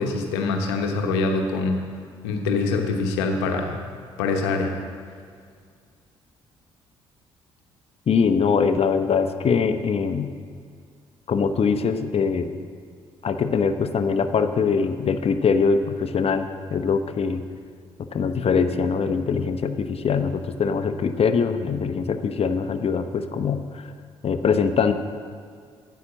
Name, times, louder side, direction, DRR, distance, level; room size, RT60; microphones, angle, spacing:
voice 1, 0.0-1.8 2.2-3.8 4.2-4.8, left 3 dB, 80° left, 3 dB, 1.1 m, -24 dB
voice 2, 8.1-10.3 11.3-12.5 13.2-17.4 18.1-23.9 24.2-24.9, left 5 dB, 45° left, 8 dB, 0.8 m, -22 dB
9.6 x 8.1 x 7.4 m, 2.1 s
hypercardioid pair, 45°, 14 cm